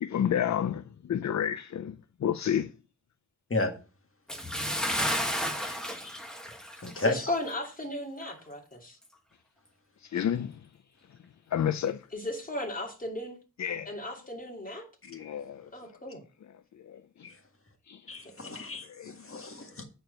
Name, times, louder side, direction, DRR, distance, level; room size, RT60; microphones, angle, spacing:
voice 1, 0.0-2.0 2.2-2.7 10.0-10.6 11.5-12.0 13.6-13.9 15.1-15.7 16.8-17.0 17.9-18.0 18.8-19.4, left 9 dB, 60° left, 0.5 m, -30 dB
Bathtub (filling or washing) / Splash splatter, 4.3-7.2 7.5-7.7 8.2-8.3, equal, ahead, 1.5 m, -32 dB
voice 2, 5.7-6.2 6.8-7.2 15.2-15.3 17.2-17.3 18.1-19.8, left 2 dB, 45° left, 1.8 m, -33 dB
voice 3, 6.9-9.0 12.1-13.4 13.9-14.9 15.7-16.2 18.4-18.6, left 1 dB, 25° left, 2.7 m, -36 dB
9.0 x 4.5 x 6.5 m
wide cardioid pair, 105°, 31 cm